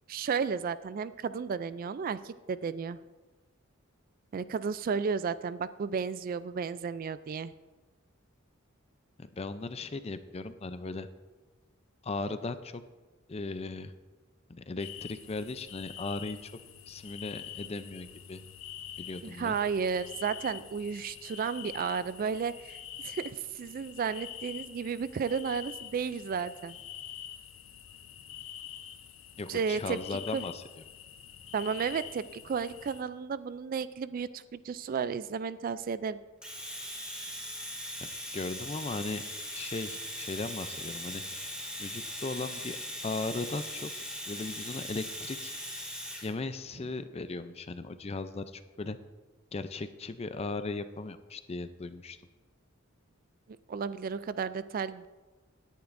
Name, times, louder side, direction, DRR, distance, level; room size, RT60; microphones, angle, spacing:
voice 1, 0.1-3.0 4.3-7.5 19.2-22.8 23.0-26.8 29.5-30.0 30.3-30.4 31.5-36.2 53.7-55.1, right 6 dB, 45° right, 15 dB, 0.3 m, -33 dB
voice 2, 9.2-11.1 12.0-12.8 13.3-13.9 14.5-16.5 16.9-18.4 19.0-19.5 29.4-30.6 38.0-39.2 39.5-41.2 41.8-42.8 43.0-43.9 44.3-45.5 46.2-49.0 49.5-52.2, left 3 dB, 30° left, 11 dB, 0.5 m, -37 dB
sound 1, 14.8-33.0, left 10 dB, 75° left, 0.7 m, -46 dB
Domestic sounds home sounds, 36.4-46.3, equal, 5° right, 2.2 m, -40 dB
17.0 x 10.5 x 2.6 m, 1.3 s
head